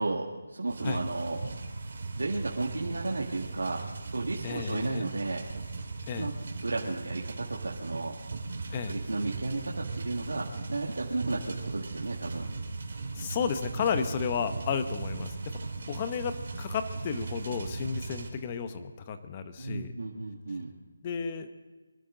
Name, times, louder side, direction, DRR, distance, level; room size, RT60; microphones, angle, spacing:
voice 1, 0.0-1.4 2.1-3.8 4.1-5.5 6.2-8.2 8.9-12.5 19.6-20.7, right 2 dB, 85° right, -2 dB, 2.0 m, -33 dB
sound 1, 0.7-18.3, right 3 dB, 50° right, 2.7 m, -38 dB
voice 2, 4.4-5.1 6.1-6.3 8.7-9.0 13.1-15.6 15.9-19.9 21.0-21.5, left 6 dB, 20° left, 9 dB, 0.9 m, -33 dB
24.5 x 12.0 x 3.9 m, 1.3 s
figure-of-eight pair, 175°, 0 cm